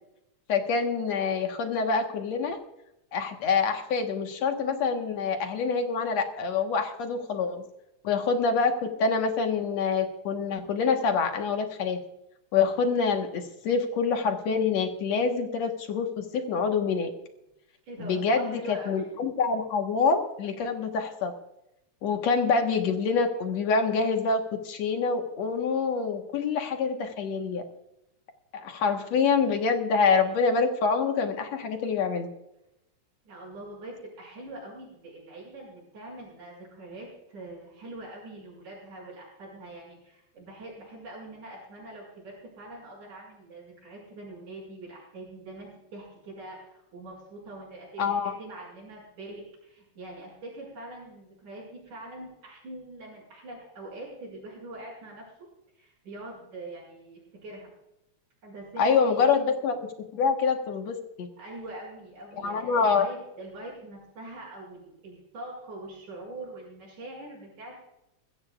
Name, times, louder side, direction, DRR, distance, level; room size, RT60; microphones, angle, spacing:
voice 1, 0.5-2.6 3.1-7.6 8.0-12.0 12.5-17.1 18.0-21.3 22.0-27.6 28.5-32.3 48.0-48.3 58.8-59.8 60.1-61.3 62.4-63.1, left 5 dB, 65° left, 4 dB, 2.5 m, -26 dB
voice 2, 17.9-19.1 33.2-55.5 55.8-57.7 58.4-59.3 61.4-67.7, right 2 dB, 80° right, -5 dB, 7.3 m, -43 dB
21.5 x 15.0 x 2.4 m, 0.85 s
omnidirectional pair, 3.5 m